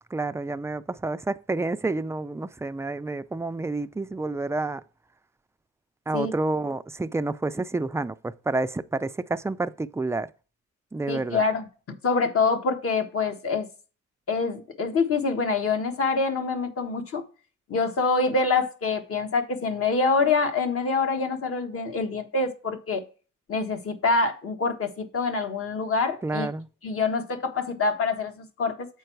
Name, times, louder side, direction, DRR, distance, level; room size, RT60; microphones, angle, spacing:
voice 1, 0.1-4.8 6.1-10.3 10.9-11.4 26.2-26.7, right 2 dB, 10° right, 0.4 m, -29 dB
voice 2, 11.1-11.6 12.0-13.7 14.3-17.2 17.7-23.0 23.5-26.5 26.8-28.9, left 4 dB, 45° left, 1.4 m, -25 dB
7.8 x 4.7 x 4.6 m
cardioid pair, 90°, 30 cm